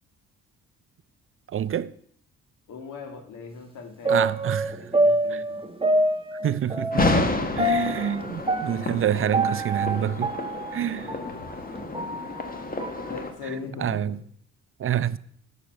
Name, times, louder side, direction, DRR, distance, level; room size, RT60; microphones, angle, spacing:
voice 1, 1.5-1.9 4.1-4.9 5.3-5.4 6.4-10.4 10.7-11.2 13.4-14.2 14.8-15.2, right 10 dB, 45° right, 0.5 m, -27 dB
voice 2, 2.7-4.2 4.8-5.6 8.3-9.0 10.9-11.4 13.1-14.0, left 4 dB, 85° left, 2.2 m, -40 dB
sound 1, 4.0-11.3 11.7-13.1 13.5-13.6, right 1 dB, 20° right, 1.5 m, -26 dB
sound 2, 6.9-13.3, left 2 dB, 30° left, 1.5 m, -30 dB
7.2 x 6.7 x 7.7 m
cardioid pair, 90°, 30 cm